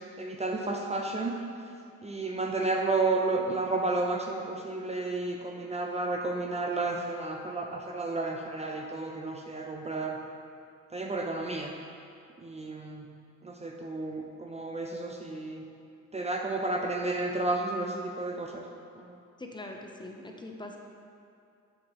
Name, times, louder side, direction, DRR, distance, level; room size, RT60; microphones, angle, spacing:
voice 1, 0.2-1.4 2.0-10.2 10.9-11.7 12.4-13.1 13.4-15.6 16.1-18.6 19.0-19.1, right 2 dB, 20° right, 1 dB, 0.5 m, -32 dB
voice 2, 19.4-20.8, left 2 dB, 15° left, 1 dB, 0.6 m, -42 dB
7.6 x 5.9 x 2.9 m, 2.5 s
cardioid pair, 90°, 30 cm